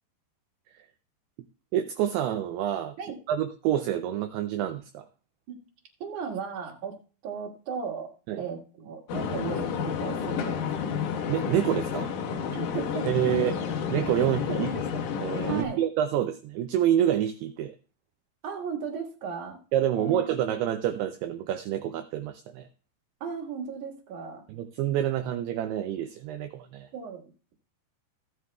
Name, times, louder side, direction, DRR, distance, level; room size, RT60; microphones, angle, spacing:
voice 1, 1.7-3.0 3.3-5.1 8.3-8.4 11.3-12.1 13.1-13.6 13.9-14.7 15.2-17.7 19.7-22.7 24.5-26.9, right 11 dB, 85° right, 9 dB, 2.3 m, -27 dB
voice 2, 6.0-8.1 8.4-10.7 12.5-13.4 14.2-14.6 15.5-15.8 18.4-19.6 19.9-20.4 23.2-24.4 26.9-27.2, right 6 dB, 55° right, -1 dB, 2.6 m, -36 dB
sound 1, 9.1-15.6, left 7 dB, 85° left, 1.7 m, -30 dB
16.5 x 9.4 x 2.3 m, 0.37 s
omnidirectional pair, 5.2 m